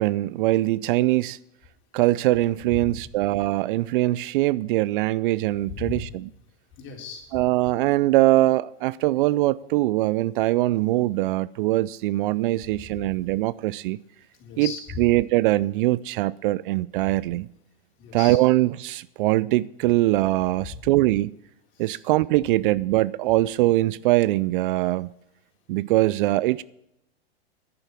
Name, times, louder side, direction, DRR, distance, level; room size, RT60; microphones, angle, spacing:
voice 1, 0.0-1.4 1.9-6.3 7.3-14.0 14.6-14.7 15.0-17.5 18.1-21.3 21.8-25.1 25.7-26.6, right 17 dB, 55° right, 0.4 m, -22 dB
voice 2, 5.7-6.0 6.8-7.4 12.7-13.1 14.4-15.0 17.0-17.1 18.0-18.4 20.7-20.8 21.8-22.0, left 6 dB, 35° left, 4.0 m, -37 dB
10.5 x 9.1 x 7.3 m
hypercardioid pair, 115°, 32 cm